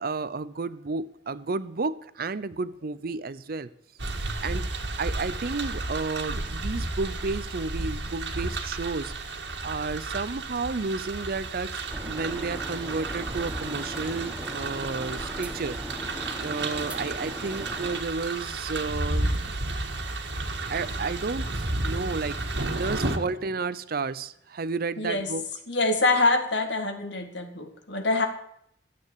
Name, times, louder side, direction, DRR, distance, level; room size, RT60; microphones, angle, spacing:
voice 1, 0.0-3.7 4.4-4.7 5.0-15.8 16.4-19.3 20.7-25.5, right 4 dB, 55° right, 16 dB, 0.6 m, -32 dB
sound 1, 4.0-23.2, right 2 dB, 70° right, 1.8 m, -32 dB
sound 2, 11.9-18.0, equal, 10° right, 1.1 m, -39 dB
voice 2, 25.0-25.3 25.7-28.3, left 2 dB, 70° left, 6 dB, 2.1 m, -25 dB
13.0 x 8.7 x 8.4 m, 0.71 s
head